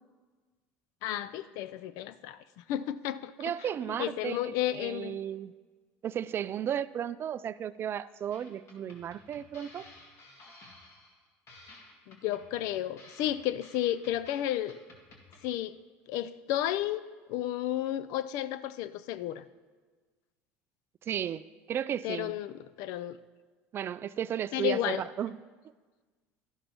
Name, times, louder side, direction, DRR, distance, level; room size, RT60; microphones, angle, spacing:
voice 1, 1.0-3.5 3.9-5.2 12.1-14.8 15.4-15.8 16.1-17.0 17.3-19.4 22.0-23.2 24.5-25.0, left 12 dB, 70° left, 15 dB, 0.4 m, -32 dB
voice 2, 3.4-5.5 6.0-9.9 21.0-22.4 23.7-25.4, right 9 dB, 40° right, 16 dB, 0.3 m, -34 dB
sound 1, 8.3-15.5, left 2 dB, 50° left, 2.0 m, -55 dB
12.0 x 11.5 x 2.9 m, 1.4 s
supercardioid pair, 90°, 6 cm